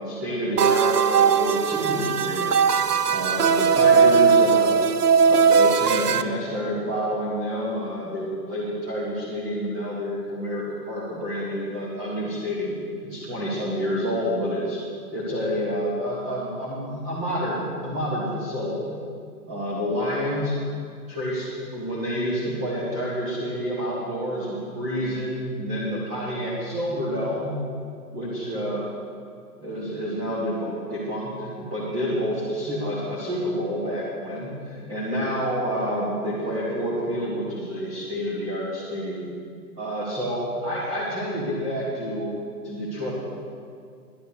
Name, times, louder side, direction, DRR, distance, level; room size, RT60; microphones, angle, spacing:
voice 1, 0.0-2.5 3.1-4.7 5.2-12.7 13.0-14.8 15.1-18.9 19.5-20.5 21.1-27.6 28.1-28.8 29.6-39.3 39.8-42.4 42.6-43.1, equal, 10° right, -8 dB, 1.4 m, -28 dB
sound 1, 0.6-6.2, right 6 dB, 70° right, 0.8 m, -19 dB
11.5 x 9.2 x 6.8 m, 2.2 s
hypercardioid pair, 160°, 48 cm